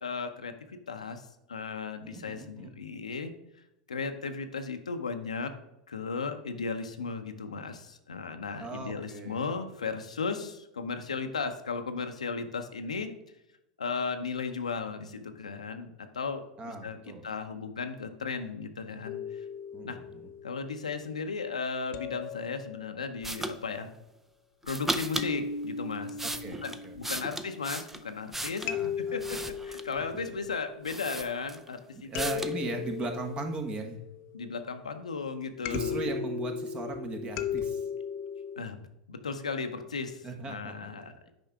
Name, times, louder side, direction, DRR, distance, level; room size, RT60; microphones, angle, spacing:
voice 1, 0.0-3.3 3.9-5.5 5.9-13.1 13.8-19.4 19.8-20.0 20.4-23.9 24.6-26.2 26.6-28.7 29.0-32.4 34.3-36.0 38.6-38.8 39.1-41.1, left 4 dB, 85° left, 7 dB, 0.8 m, -36 dB
voice 2, 2.0-2.7 8.6-9.4 16.6-17.2 19.7-20.3 26.2-27.2 28.6-29.2 31.9-34.0 35.6-37.8 40.2-40.9, right 3 dB, 30° right, 4 dB, 1.5 m, -38 dB
sound 1, 19.1-21.1 21.9-23.4 25.2-28.1 28.7-31.3 32.1-34.4 35.7-38.6, left 7 dB, 50° left, 0.6 m, -37 dB
sound 2, 23.2-23.6 24.6-25.3 25.9-28.8 29.2-30.0 30.5-30.6 30.8-31.7 32.1-32.6, right 1 dB, 10° right, 0.6 m, -36 dB
9.0 x 5.4 x 3.5 m, 0.89 s
hypercardioid pair, 90°, 4 cm